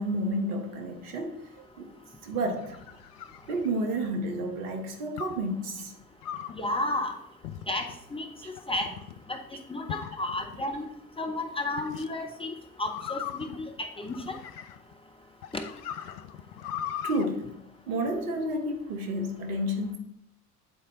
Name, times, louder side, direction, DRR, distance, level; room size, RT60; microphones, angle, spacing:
voice 1, 0.0-1.9 2.2-2.8 3.5-5.9 17.0-17.5 17.9-20.0, right 1 dB, 65° right, 1.1 m, -31 dB
sound 1, 2.3-4.2 5.2-5.5 6.2-6.7 7.4-8.0 8.6-9.2 9.9-10.7 11.8-12.1 12.9-14.9 15.4-17.3, left 10 dB, 75° left, 0.5 m, -39 dB
voice 2, 6.5-7.1 7.7-8.3 8.7-8.9 9.3-9.4 9.7-10.9 11.2-12.5 12.8-14.4 15.5-15.6, left 2 dB, 10° left, 0.6 m, -32 dB
8.2 x 4.2 x 3.9 m
figure-of-eight pair, 65°, 46 cm